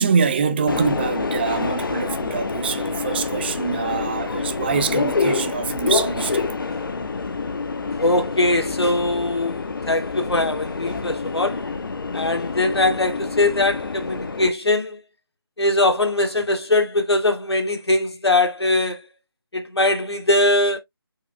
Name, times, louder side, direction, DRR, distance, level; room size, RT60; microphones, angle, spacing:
voice 1, 0.0-6.5, right 6 dB, 25° right, 0.7 m, -24 dB
Subway metro underground, 0.7-14.5, left 4 dB, 55° left, 1.4 m, -27 dB
voice 2, 8.0-11.7 12.1-15.0 15.6-19.1 19.5-20.8, left 2 dB, 80° left, 2.2 m, -21 dB
6.5 x 4.8 x 3.3 m
figure-of-eight pair, 160°, 13 cm